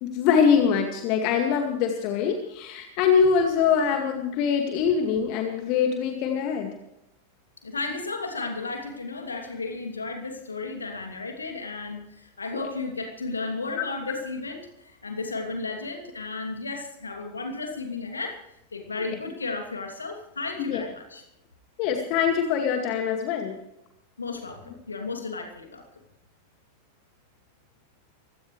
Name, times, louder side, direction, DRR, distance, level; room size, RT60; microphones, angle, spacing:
voice 1, 0.0-6.7 12.5-12.7 20.6-20.8 21.8-23.5, left 7 dB, 45° left, 4 dB, 2.2 m, -23 dB
voice 2, 7.6-21.2 24.2-25.9, left 3 dB, 75° left, 3 dB, 2.8 m, -34 dB
24.0 x 16.5 x 3.3 m, 0.84 s
figure-of-eight pair, 90°, 0 cm